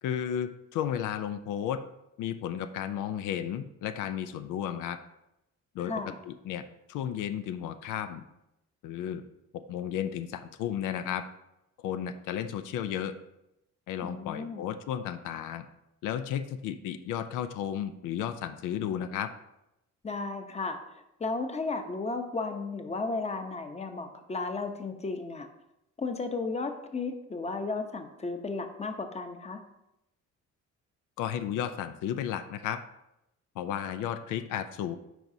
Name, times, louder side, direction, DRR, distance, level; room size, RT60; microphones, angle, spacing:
voice 1, 0.0-1.8 2.2-5.0 5.7-8.2 8.8-9.2 9.5-11.2 11.8-13.1 13.9-15.6 16.0-19.3 31.2-32.8 33.6-35.0, left 9 dB, 90° left, 10 dB, 0.5 m, -33 dB
voice 2, 5.8-6.2 14.0-14.7 20.0-25.5 26.0-29.6, left 3 dB, 20° left, 6 dB, 0.8 m, -34 dB
9.0 x 4.7 x 2.7 m, 0.87 s
cardioid pair, 90°, 30 cm